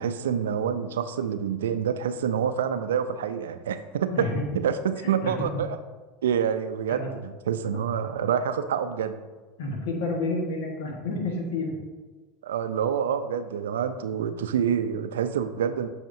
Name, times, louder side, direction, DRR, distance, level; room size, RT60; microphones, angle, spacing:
voice 1, 0.0-4.3 4.5-5.8 6.2-9.2 12.4-15.9, right 8 dB, 80° right, 10 dB, 0.4 m, -27 dB
voice 2, 4.1-4.4 5.2-5.5 6.9-7.1 9.6-11.7, left 2 dB, 75° left, 1 dB, 1.3 m, -29 dB
7.7 x 5.0 x 2.6 m, 1.3 s
hypercardioid pair, 85°, 0 cm